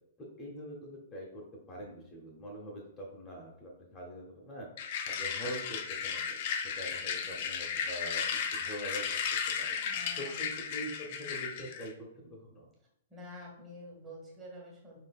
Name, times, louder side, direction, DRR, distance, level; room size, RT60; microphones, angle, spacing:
voice 1, 0.2-4.7 5.1-6.4 6.6-9.2 9.6-9.8 10.2-12.7, equal, 20° left, -2 dB, 1.0 m, -44 dB
sound 1, 4.8-11.9, left 7 dB, 45° left, 0.5 m, -35 dB
voice 2, 7.0-7.5 9.8-10.6 13.1-15.0, left 1 dB, 15° right, -3 dB, 1.6 m, -49 dB
4.9 x 3.9 x 2.4 m, 0.80 s
figure-of-eight pair, 115°, 0 cm